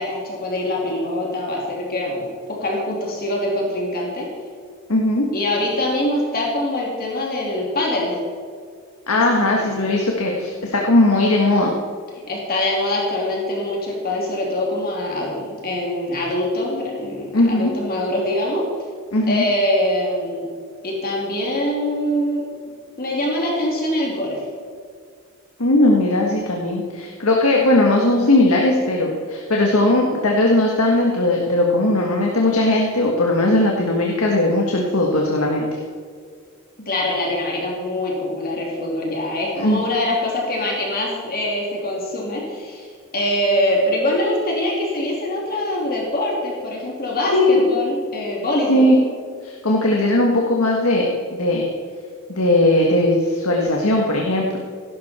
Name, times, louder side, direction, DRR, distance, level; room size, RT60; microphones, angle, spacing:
voice 1, 0.0-4.3 5.3-8.2 9.1-9.2 9.5-9.7 12.3-18.6 19.3-20.5 20.8-22.4 23.0-24.4 36.9-48.9, left 1 dB, 45° left, -3 dB, 2.9 m, -23 dB
voice 2, 4.9-5.3 9.1-11.7 17.3-17.7 19.1-19.4 25.6-35.8 39.6-39.8 47.3-47.6 48.7-49.0 49.4-51.7 52.3-54.6, left 1 dB, 75° left, 0 dB, 1.7 m, -18 dB
16.5 x 12.0 x 4.4 m, 2.1 s
head